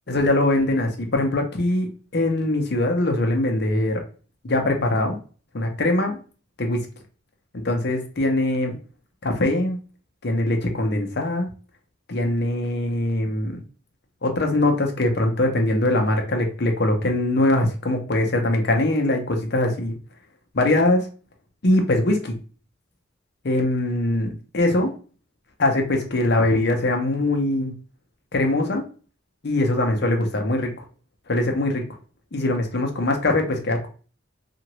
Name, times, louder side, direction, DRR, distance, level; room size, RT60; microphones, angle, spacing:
voice 1, 0.1-4.0 4.4-5.2 5.5-6.2 6.6-6.8 7.5-8.8 9.2-9.8 10.2-11.5 12.1-13.6 14.2-20.0 20.5-21.1 21.6-22.3 23.4-24.9 25.6-27.7 28.3-28.8 29.4-30.7 31.3-31.8 32.3-33.9, left 1 dB, 50° left, 3 dB, 0.7 m, -22 dB
2.9 x 2.5 x 3.0 m, 0.38 s
head